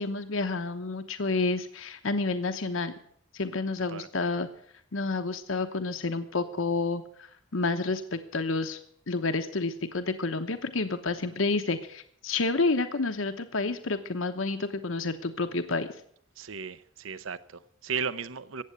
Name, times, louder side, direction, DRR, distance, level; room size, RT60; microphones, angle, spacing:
voice 1, 0.0-2.9 3.3-4.5 4.9-7.0 7.5-8.8 9.1-15.9, left 3 dB, 85° left, 8 dB, 1.0 m, -29 dB
voice 2, 16.4-18.6, right 6 dB, 85° right, 15 dB, 0.7 m, -35 dB
15.0 x 8.7 x 8.1 m, 0.64 s
head